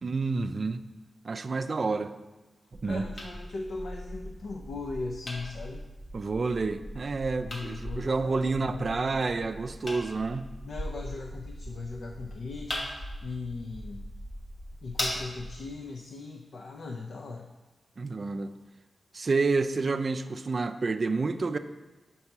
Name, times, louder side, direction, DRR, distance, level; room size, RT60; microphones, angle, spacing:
voice 1, 0.0-0.8 1.2-2.1 2.8-3.0 6.1-10.5 18.0-18.5 19.1-21.6, right 3 dB, 40° right, 9 dB, 0.3 m, -29 dB
sound 1, 2.7-15.7, left 1 dB, 45° left, 1.0 m, -40 dB
voice 2, 2.8-5.9 7.5-9.1 10.6-14.1 14.8-17.5, left 3 dB, 70° left, 3 dB, 0.5 m, -39 dB
5.5 x 5.4 x 5.9 m, 1.2 s
wide cardioid pair, 165°, 0 cm